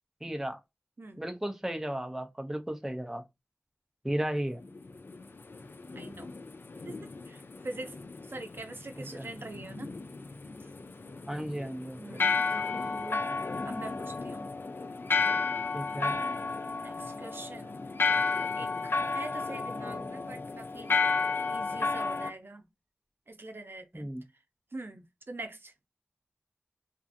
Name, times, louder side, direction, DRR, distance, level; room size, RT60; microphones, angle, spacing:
voice 1, 0.2-0.6 1.2-3.2 4.0-4.6 9.0-9.3 11.3-12.0 15.7-16.2 23.9-24.2, right 1 dB, 10° right, 0.4 m, -34 dB
sound 1, 4.6-22.3, left 4 dB, 60° left, 0.3 m, -33 dB
voice 2, 6.0-6.3 6.9-8.0 8.3-9.9 12.0-13.3 13.6-14.5 16.7-18.0 18.5-21.0 21.5-22.7 23.3-24.1 24.7-25.7, right 2 dB, 60° right, 0.5 m, -44 dB
2.5 x 2.4 x 2.5 m
wide cardioid pair, 55°, 4 cm